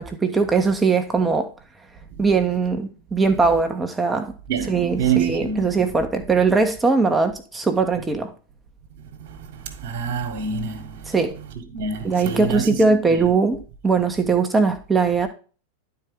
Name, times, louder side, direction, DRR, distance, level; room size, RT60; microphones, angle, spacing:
voice 1, 0.0-1.5 2.2-4.3 4.7-8.3 11.1-11.4 12.0-15.3, right 4 dB, 10° right, 1.2 m, -20 dB
voice 2, 4.5-5.8 9.3-11.1 11.7-12.8 13.1-13.2, right 6 dB, 50° right, 1.8 m, -27 dB
11.0 x 4.6 x 3.6 m
figure-of-eight pair, 90°, 0 cm